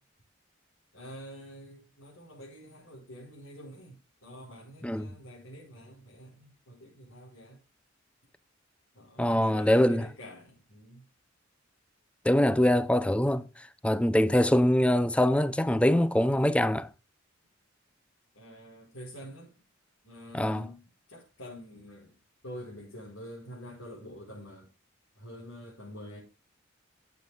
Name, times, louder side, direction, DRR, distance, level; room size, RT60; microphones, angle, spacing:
voice 1, 0.9-7.6 8.9-11.0 18.3-19.5 20.0-20.8 21.1-22.1 22.4-24.7 25.2-26.2, equal, 90° left, 5.6 m, -46 dB
voice 2, 9.2-10.1 12.2-13.5 13.8-16.9 20.3-20.7, left 1 dB, 5° left, 0.4 m, -23 dB
14.0 x 8.1 x 2.3 m
head